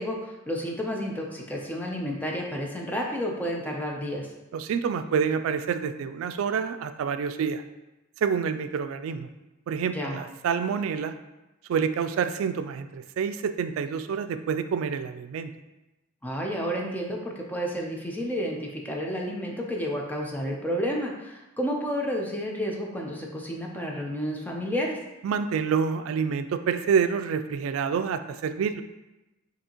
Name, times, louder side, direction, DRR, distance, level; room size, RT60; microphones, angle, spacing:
voice 1, 0.0-4.3 9.9-10.2 16.2-25.0, equal, 10° left, -1 dB, 0.5 m, -31 dB
voice 2, 4.5-7.6 8.2-9.3 9.7-11.1 11.7-15.5 25.2-28.8, right 6 dB, 90° right, 10 dB, 0.3 m, -27 dB
6.5 x 2.8 x 2.9 m, 1.0 s
head